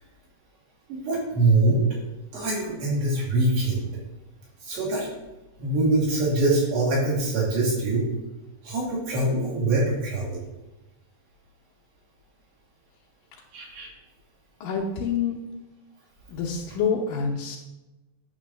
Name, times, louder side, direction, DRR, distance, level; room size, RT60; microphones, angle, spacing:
voice 1, 0.9-1.8 2.3-3.9 4.6-5.1 5.6-8.1 8.6-10.4 13.5-13.9, right 2 dB, 90° right, -7 dB, 4.6 m, -24 dB
voice 2, 14.6-15.4 16.3-17.6, left 6 dB, 75° left, -3 dB, 2.4 m, -27 dB
9.0 x 3.1 x 6.4 m, 1.0 s
omnidirectional pair, 4.0 m